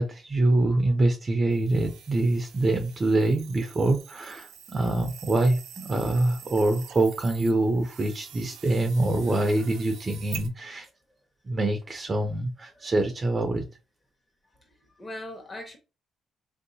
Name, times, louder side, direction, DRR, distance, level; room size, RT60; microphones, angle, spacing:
voice 1, 0.0-10.9 11.4-13.6, right 2 dB, 35° right, 0.5 m, -25 dB
sound 1, 1.5-10.5, right 8 dB, 90° right, 0.5 m, -45 dB
voice 2, 9.2-9.7 15.0-15.8, left 1 dB, 25° left, 1.2 m, -40 dB
3.4 x 2.7 x 2.7 m
cardioid pair, 90°, 0 cm